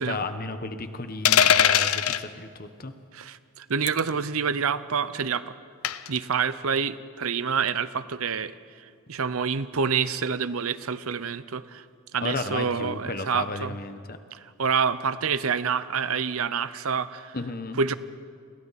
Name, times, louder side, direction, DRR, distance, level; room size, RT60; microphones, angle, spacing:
voice 1, 0.0-2.9 12.2-14.2 17.3-17.8, left 3 dB, 40° left, 9 dB, 1.1 m, -33 dB
sound 1, 1.2-2.2 3.9-4.1 5.8-6.2, left 9 dB, 75° left, 0.6 m, -20 dB
voice 2, 3.1-5.5 6.1-11.8 12.1-13.8 14.3-17.4 17.8-17.9, right 6 dB, 70° right, 15 dB, 0.7 m, -27 dB
29.5 x 22.0 x 4.2 m, 2.3 s
head